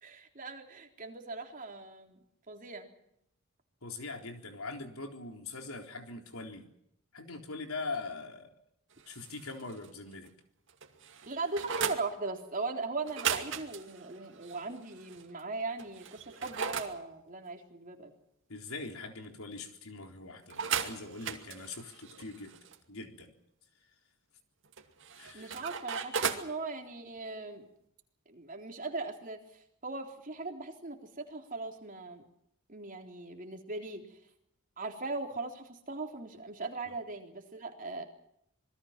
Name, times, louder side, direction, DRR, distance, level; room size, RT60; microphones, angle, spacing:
voice 1, 0.0-2.2 2.5-2.9 11.3-18.1 25.3-27.7 28.3-32.2 32.7-34.2 34.8-38.0, right 3 dB, 40° right, 3 dB, 3.7 m, -39 dB
voice 2, 3.8-6.7 7.1-8.6 9.1-10.3 18.5-22.6 22.9-23.3 25.2-25.5 36.9-37.0, left 3 dB, 80° left, 4 dB, 3.9 m, -42 dB
sound 1, 9.0-9.9 10.2-10.3 10.7-12.0 13.0-15.2 15.8-16.9 20.5-22.8 24.7-26.5, right 7 dB, 60° right, 2.4 m, -37 dB
26.5 x 21.5 x 5.9 m, 0.74 s
head